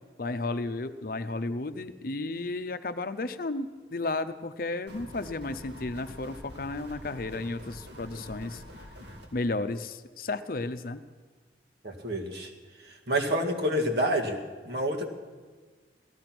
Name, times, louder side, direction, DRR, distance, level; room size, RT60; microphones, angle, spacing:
voice 1, 0.2-8.6 9.3-11.0, left 2 dB, 55° left, 11 dB, 0.7 m, -33 dB
sound 1, 4.9-9.3, equal, 85° right, 2.6 m, -45 dB
voice 2, 11.8-12.5 13.1-14.4 14.6-15.1, equal, 65° right, 2 dB, 2.0 m, -28 dB
17.5 x 13.5 x 6.0 m, 1.4 s
head